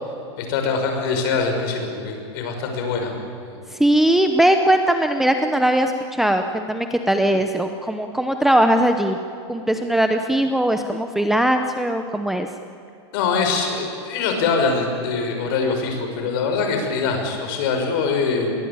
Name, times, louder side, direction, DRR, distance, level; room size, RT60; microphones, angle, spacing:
voice 1, 0.4-3.1 3.4-3.5 13.1-18.5, left 4 dB, 50° left, 3 dB, 6.3 m, -23 dB
voice 2, 3.7-9.2 9.5-12.5, right 1 dB, ahead, 6 dB, 0.8 m, -19 dB
29.0 x 22.0 x 8.9 m, 2.6 s
supercardioid pair, 160°, 15 cm